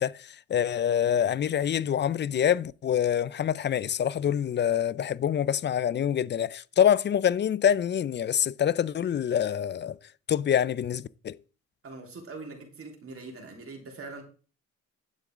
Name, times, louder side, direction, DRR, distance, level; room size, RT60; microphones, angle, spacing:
voice 1, 0.0-10.0 10.3-11.4, left 9 dB, 35° left, 0.4 m, -26 dB
voice 2, 11.8-14.2, right 3 dB, 50° right, 3.4 m, -42 dB
10.0 x 7.7 x 3.6 m
cardioid pair, 90°, 30 cm